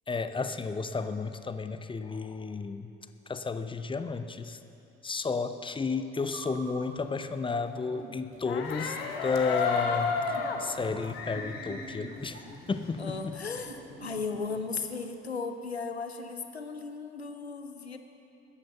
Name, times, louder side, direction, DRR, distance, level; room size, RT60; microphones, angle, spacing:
voice 1, 0.1-2.9 3.3-4.6 5.0-10.1 10.6-12.4 12.7-13.4, left 4 dB, 15° left, 10 dB, 0.6 m, -32 dB
sound 1, 6.2-14.7, right 3 dB, 40° right, 2.4 m, -47 dB
sound 2, 8.3-13.1 13.4-14.5, left 5 dB, 70° left, 1.2 m, -33 dB
voice 2, 13.0-18.0, left 4 dB, 85° left, 7 dB, 0.7 m, -36 dB
13.0 x 9.9 x 6.8 m, 2.9 s
figure-of-eight pair, 55°, 31 cm